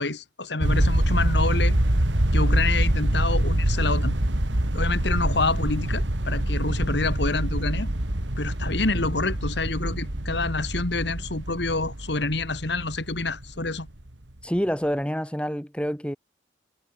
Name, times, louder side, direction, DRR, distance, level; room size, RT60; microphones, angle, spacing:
voice 1, 0.0-1.8 2.3-4.1 4.7-7.9 8.4-13.9, left 3 dB, 70° left, 2.2 m, -27 dB
sound 1, 0.6-13.9, right 1 dB, 85° right, 2.7 m, -25 dB
voice 2, 14.4-16.2, equal, 5° left, 7.0 m, -27 dB
head